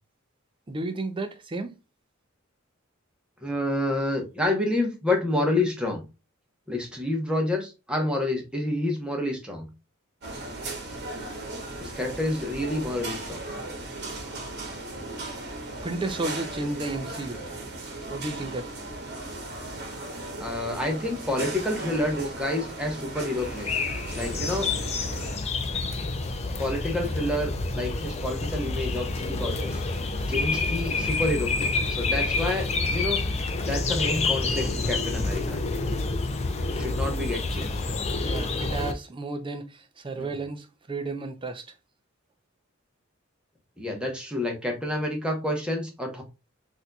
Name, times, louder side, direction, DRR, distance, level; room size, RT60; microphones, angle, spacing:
voice 1, 0.7-1.7 15.8-17.4 18.1-18.7 38.3-41.6, right 2 dB, 25° right, 0.5 m, -32 dB
voice 2, 3.4-6.0 6.7-9.7 11.8-13.4 20.4-23.7 24.1-24.7 26.6-29.8 30.3-33.2 33.6-35.6 36.7-37.8 40.2-40.3 43.8-46.2, left 1 dB, 5° right, 0.8 m, -29 dB
sound 1, 10.2-25.4, right 2 dB, 50° right, 1.1 m, -37 dB
sound 2, 23.4-38.9, left 3 dB, 30° left, 0.4 m, -28 dB
4.2 x 2.6 x 2.3 m
head